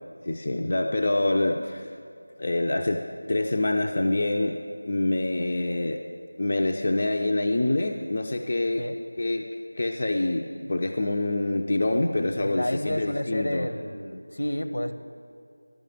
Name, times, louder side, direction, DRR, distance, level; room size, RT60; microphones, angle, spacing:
voice 1, 0.3-1.9 2.4-6.0 6.4-8.9 9.2-9.5 9.7-13.7, left 2 dB, 35° left, 3 dB, 0.5 m, -26 dB
voice 2, 12.4-14.9, left 1 dB, 70° left, 7 dB, 0.9 m, -30 dB
12.0 x 6.4 x 8.5 m, 2.5 s
figure-of-eight pair, 175°, 0 cm